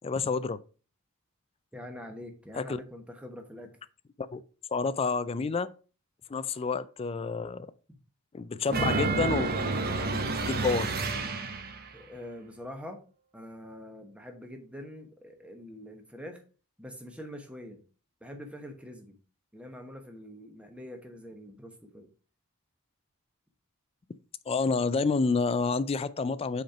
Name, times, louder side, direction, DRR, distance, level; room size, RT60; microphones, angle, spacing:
voice 1, 0.0-0.6 2.5-2.8 4.2-4.4 4.7-5.7 6.3-7.7 8.3-9.6 9.9-10.9 24.5-26.6, left 4 dB, 25° left, 0.3 m, -29 dB
voice 2, 1.7-3.7 11.9-13.0 13.3-16.4 16.8-17.8 18.2-19.2 19.5-22.1, left 1 dB, 5° right, 1.1 m, -44 dB
sound 1, 8.7-11.9, right 3 dB, 45° right, 0.9 m, -29 dB
6.1 x 4.4 x 4.9 m
head